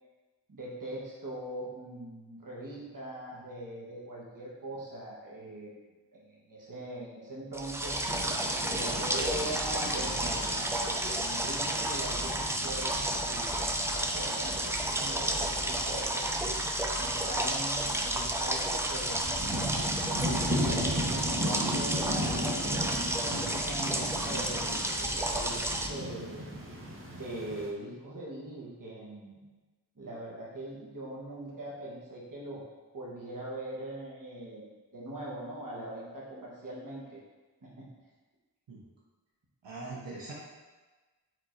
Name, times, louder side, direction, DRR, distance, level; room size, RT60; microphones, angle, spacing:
voice 1, 0.5-5.8 6.1-8.1 8.6-16.4 16.9-26.4 27.1-29.5 29.9-32.6 32.9-34.6 34.9-37.2 37.6-37.9, right 1 dB, 50° right, -5 dB, 1.3 m, -41 dB
sound 1, 7.5-25.9, right 1 dB, 5° right, 0.4 m, -31 dB
sound 2, 8.1-27.7, equal, 30° right, 0.8 m, -38 dB
voice 2, 39.6-40.3, right 3 dB, 85° right, -5 dB, 0.8 m, -41 dB
4.6 x 3.6 x 2.6 m, 1.3 s
wide cardioid pair, 45°, 42 cm